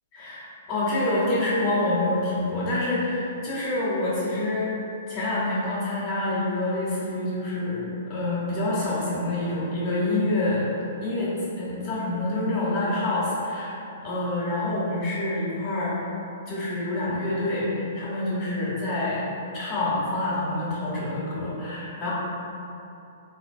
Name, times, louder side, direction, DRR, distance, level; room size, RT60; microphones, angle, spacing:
voice 1, 0.1-4.7 5.1-10.7 11.0-13.8 14.0-16.0 16.5-22.1, left 2 dB, 35° left, -10 dB, 1.0 m, -27 dB
3.7 x 2.7 x 2.5 m, 2.8 s
hypercardioid pair, 125°, 0 cm